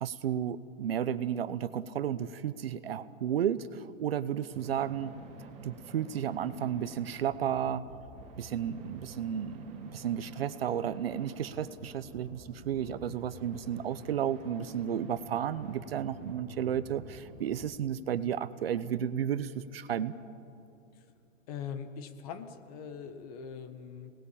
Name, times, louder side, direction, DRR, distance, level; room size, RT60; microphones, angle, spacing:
voice 1, 0.0-7.8 8.4-20.1, right 9 dB, 50° right, 14 dB, 0.9 m, -33 dB
sound 1, 4.5-17.8, right 2 dB, 15° right, 3.1 m, -49 dB
voice 2, 21.5-24.1, left 7 dB, 30° left, 9 dB, 1.5 m, -42 dB
27.5 x 19.5 x 8.7 m, 2.6 s
hypercardioid pair, 160°, 39 cm